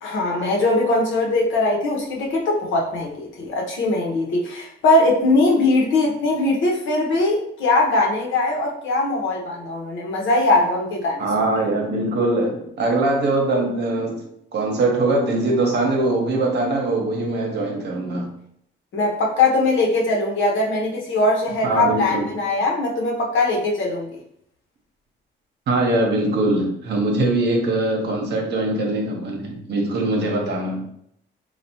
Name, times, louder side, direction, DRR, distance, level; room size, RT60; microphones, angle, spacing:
voice 1, 0.0-11.3 18.9-24.2, left 2 dB, 75° left, -1 dB, 0.9 m, -21 dB
voice 2, 11.2-14.2 14.5-18.3 21.6-22.3 25.7-30.8, right 2 dB, 60° right, 1 dB, 0.9 m, -22 dB
3.3 x 2.4 x 2.8 m, 0.72 s
cardioid pair, 90°, 20 cm